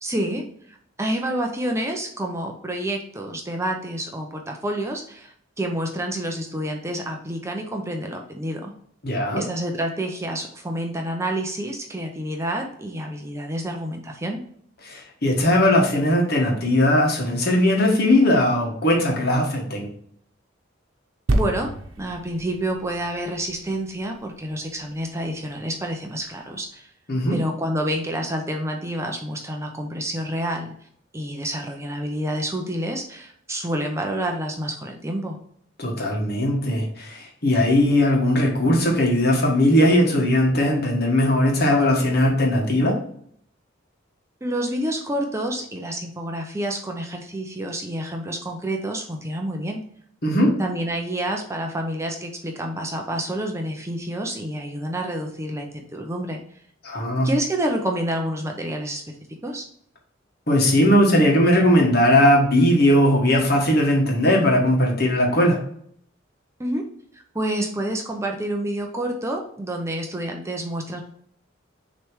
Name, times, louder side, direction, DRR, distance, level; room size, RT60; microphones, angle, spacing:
voice 1, 0.0-8.7 9.4-14.4 21.3-21.7 22.0-26.9 27.3-30.7 31.1-35.4 44.4-49.9 50.6-56.4 57.2-59.0 59.4-59.6 66.6-66.8 67.1-71.0, right 1 dB, 15° right, 2 dB, 0.6 m, -28 dB
voice 2, 9.0-9.4 14.8-19.9 27.1-27.4 35.8-43.0 50.2-50.5 56.8-57.3 60.5-65.6, left 1 dB, 55° left, 0 dB, 1.5 m, -19 dB
sound 1, 21.3-24.9 25.5-25.6, right 1 dB, 80° right, 0.9 m, -28 dB
6.6 x 3.3 x 4.7 m, 0.64 s
head